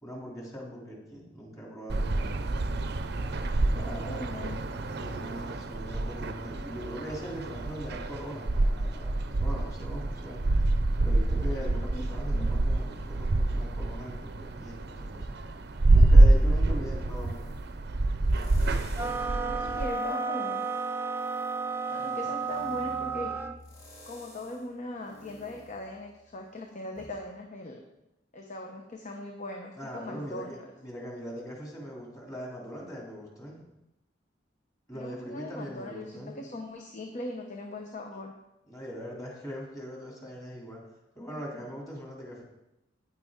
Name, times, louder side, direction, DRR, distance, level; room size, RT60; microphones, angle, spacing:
voice 1, 0.0-2.5 3.7-4.2 4.9-10.4 11.0-15.4 15.9-17.5 21.9-22.2 29.8-33.6 34.9-36.3 38.7-40.8 41.1-42.4, equal, 20° left, -3 dB, 2.8 m, -41 dB
sound 1, 1.9-19.9, right 2 dB, 60° right, 0.6 m, -26 dB
voice 2, 3.7-4.6 11.9-12.5 19.2-20.6 21.9-23.4 24.1-27.8 28.3-30.7 34.9-38.3, left 1 dB, 40° left, 2 dB, 0.9 m, -40 dB
sound 2, 16.3-17.7 18.3-19.3 19.8-26.5 27.0-27.1, equal, 80° left, 3.5 m, -51 dB
sound 3, 18.9-23.6, right 4 dB, 10° right, 0.3 m, -32 dB
9.5 x 9.4 x 3.7 m, 0.91 s
head